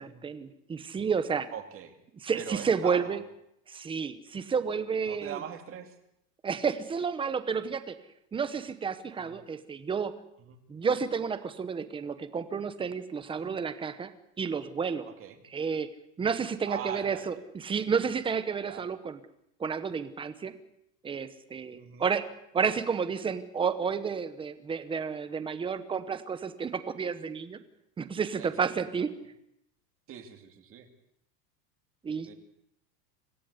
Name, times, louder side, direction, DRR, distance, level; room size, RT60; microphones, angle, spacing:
voice 1, 0.0-1.5 2.2-3.2 3.7-5.4 6.4-8.0 8.3-10.1 10.7-14.1 14.4-15.1 15.5-15.9 16.2-19.2 19.6-20.5 21.0-22.2 22.5-27.6 28.0-29.1 32.0-32.3, right 6 dB, 10° right, 11 dB, 1.0 m, -31 dB
voice 2, 1.5-1.9 2.3-3.2 5.1-5.9 9.2-9.4 10.4-10.6 13.4-13.6 15.1-15.4 16.7-17.4 18.6-18.8 21.7-22.1 28.4-28.7 30.1-30.9 32.3-32.4, right 9 dB, 25° right, 6 dB, 2.6 m, -41 dB
26.0 x 17.0 x 8.3 m, 0.77 s
supercardioid pair, 170°, 49 cm